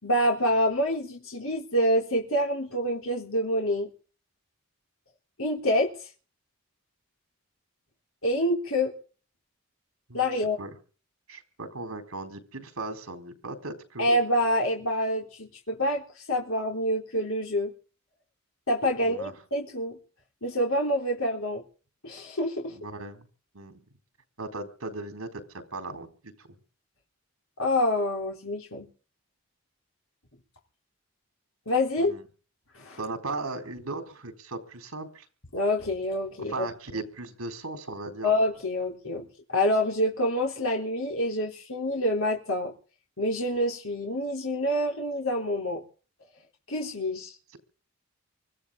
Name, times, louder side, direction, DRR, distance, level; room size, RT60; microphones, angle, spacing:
voice 1, 0.0-3.9 5.4-5.9 8.2-8.9 10.1-10.6 14.0-16.0 16.3-17.7 18.7-20.0 20.4-21.6 22.0-22.7 27.6-28.9 31.7-32.1 32.8-33.0 35.5-36.5 36.9-37.0 38.2-42.7 43.2-45.8 46.7-47.3, left 1 dB, 75° left, 3.7 m, -27 dB
voice 2, 10.1-10.7 11.3-14.1 19.0-19.3 22.7-23.3 23.5-23.8 24.4-26.5 32.0-32.2 33.0-35.3 36.5-38.3, right 2 dB, 75° right, 4.0 m, -37 dB
24.5 x 15.0 x 3.8 m
head